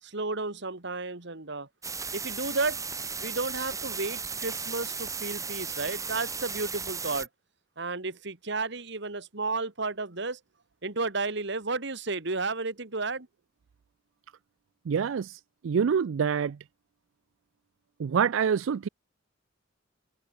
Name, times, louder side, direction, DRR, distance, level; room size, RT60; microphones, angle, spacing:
voice 1, 0.0-1.7 2.1-2.8 3.2-7.3 7.8-10.4 10.8-13.3, right 3 dB, 65° right, 2.3 m, -32 dB
sound 1, 1.8-7.3, right 5 dB, 15° right, 2.3 m, -35 dB
voice 2, 14.9-16.6 18.0-18.9, right 7 dB, 85° right, 0.4 m, -26 dB
head